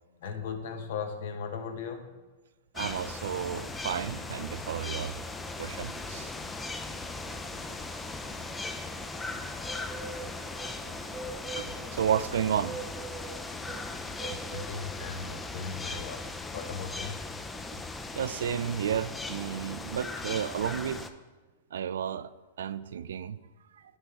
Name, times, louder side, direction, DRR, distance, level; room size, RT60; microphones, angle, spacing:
voice 1, 0.1-2.1 14.2-16.2 16.5-17.2, left 5 dB, 65° left, 7 dB, 0.9 m, -38 dB
sound 1, 2.7-21.1, left 3 dB, 10° left, 0.4 m, -38 dB
voice 2, 2.7-5.2 5.6-6.3 10.9-11.0 11.6-12.8 18.1-21.0 21.7-22.3 22.6-23.4, right 9 dB, 85° right, 15 dB, 0.3 m, -32 dB
sound 2, 3.0-14.6, right 4 dB, 20° right, 1.1 m, -46 dB
9.8 x 3.5 x 4.6 m, 1.2 s
hypercardioid pair, 145°, 0 cm